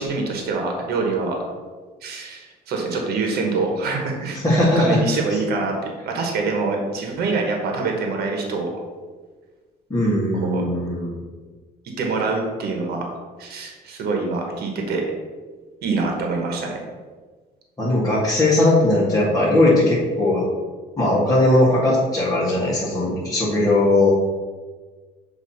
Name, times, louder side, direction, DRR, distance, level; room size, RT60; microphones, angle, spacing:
voice 1, 0.0-1.5 2.0-4.4 4.7-5.7 6.1-8.7 10.3-10.6 12.0-13.1 13.4-15.0 15.8-16.7, right 3 dB, 70° right, 1 dB, 1.3 m, -25 dB
voice 2, 4.4-5.0 9.9-11.2 17.8-20.4 21.0-24.1, left 1 dB, 20° left, -9 dB, 1.8 m, -18 dB
6.7 x 3.0 x 5.6 m, 1.4 s
cardioid pair, 110°, 17 cm